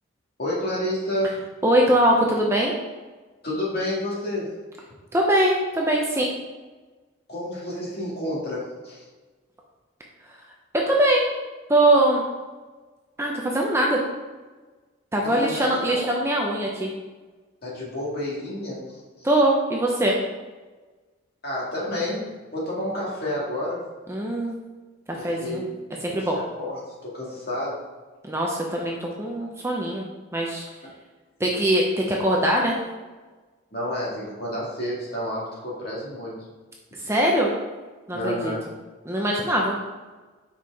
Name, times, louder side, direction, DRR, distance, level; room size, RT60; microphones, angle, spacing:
voice 1, 0.4-1.4 3.4-4.5 7.3-9.0 15.2-16.0 17.6-19.3 21.4-22.2 22.5-23.8 25.1-25.7 26.3-27.8 33.7-36.3 38.1-38.6, left 1 dB, 50° left, -5 dB, 2.1 m, -30 dB
voice 2, 1.6-2.7 5.1-6.2 10.7-11.3 11.7-12.2 13.2-14.0 15.1-16.9 19.2-20.2 24.1-24.6 25.2-25.6 26.0-26.4 28.2-30.0 30.3-30.6 31.4-32.8 37.1-37.5 38.1-38.5 39.0-39.8, right 1 dB, 15° right, -1 dB, 0.7 m, -22 dB
5.5 x 4.8 x 4.7 m, 1.3 s
head